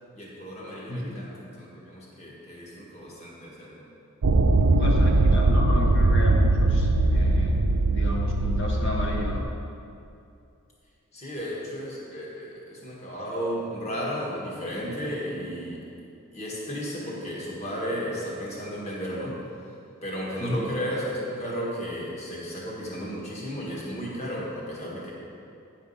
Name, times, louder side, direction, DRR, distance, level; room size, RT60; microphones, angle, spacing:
voice 1, 0.1-3.8 11.1-15.8 16.3-19.4 20.0-25.1, equal, 30° left, -5 dB, 1.6 m, -34 dB
voice 2, 0.9-1.2 4.8-7.5 7.8-9.5 20.4-20.7, left 1 dB, 55° left, -1 dB, 1.3 m, -32 dB
sound 1, 4.2-9.4, right 2 dB, 75° right, 0.5 m, -21 dB
9.7 x 5.0 x 5.5 m, 2.6 s
head